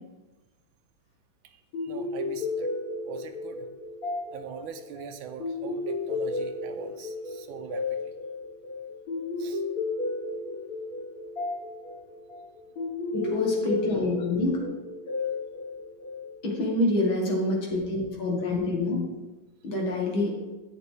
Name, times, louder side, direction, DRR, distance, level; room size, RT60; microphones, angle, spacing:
sound 1, 1.7-16.5, left 3 dB, 50° left, 2.1 m, -33 dB
voice 1, 1.8-2.7 3.1-3.7 4.3-8.0 9.4-9.6, right 8 dB, 85° right, 7 dB, 1.4 m, -42 dB
voice 2, 13.1-14.6 16.4-19.0 19.6-20.4, left 2 dB, 85° left, -2 dB, 2.8 m, -26 dB
10.5 x 8.4 x 3.5 m, 1.1 s
omnidirectional pair, 2.2 m